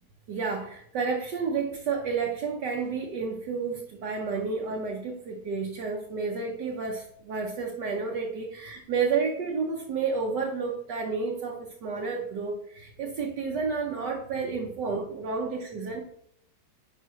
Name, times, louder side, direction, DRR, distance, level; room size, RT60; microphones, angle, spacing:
voice 1, 0.3-16.0, right 5 dB, 65° right, 1 dB, 1.4 m, -31 dB
9.2 x 5.2 x 3.1 m, 0.71 s
omnidirectional pair, 2.1 m